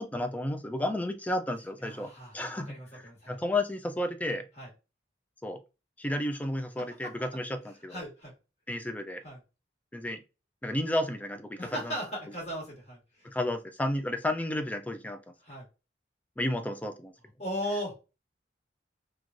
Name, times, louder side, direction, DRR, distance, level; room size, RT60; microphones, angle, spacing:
voice 1, 0.0-4.5 5.4-5.6 6.0-8.0 8.7-9.2 9.9-10.2 10.6-11.9 13.2-15.2 16.4-17.1, left 1 dB, 10° left, 0.3 m, -32 dB
voice 2, 1.8-3.4 4.6-4.7 7.0-7.1 7.9-8.3 9.2-9.4 11.6-13.3 15.4-15.7 17.4-18.0, equal, 35° left, 1.4 m, -37 dB
3.1 x 2.3 x 2.4 m
head